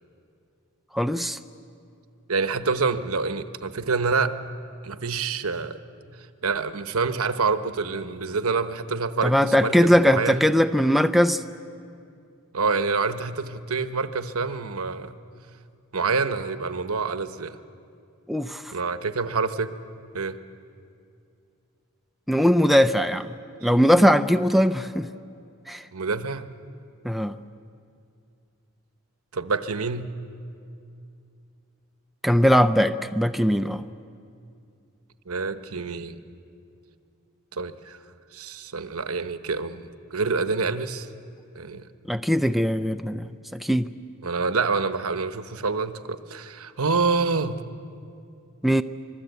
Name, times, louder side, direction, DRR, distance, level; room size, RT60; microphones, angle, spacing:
voice 1, 0.9-1.4 9.2-11.4 18.3-18.7 22.3-23.3 23.6-25.1 25.7-25.8 27.0-27.4 32.2-33.8 42.1-43.9 48.6-48.8, equal, ahead, 8 dB, 0.5 m, -20 dB
voice 2, 2.3-4.4 4.8-5.8 6.4-10.4 12.5-15.1 15.9-17.6 18.7-19.8 20.1-20.4 25.9-26.5 29.3-30.1 35.3-36.2 37.5-38.0 38.3-41.1 41.5-41.8 44.2-47.6, right 4 dB, 75° right, 10 dB, 1.0 m, -27 dB
25.5 x 20.5 x 8.2 m, 2.5 s
head